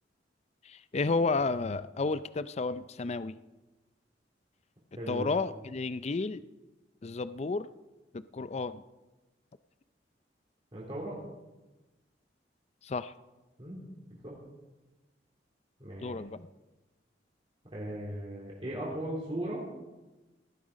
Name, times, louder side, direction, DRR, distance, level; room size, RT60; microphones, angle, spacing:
voice 1, 0.7-3.3 5.1-6.4 7.0-7.7 8.1-8.8 12.8-13.1 16.0-16.5, left 3 dB, 35° left, 14 dB, 0.5 m, -32 dB
voice 2, 5.0-5.3 10.7-11.2 13.6-13.8 14.1-14.3 15.8-16.2 17.7-19.6, right 1 dB, 30° right, -5 dB, 3.6 m, -37 dB
18.5 x 13.5 x 5.1 m, 1.1 s
head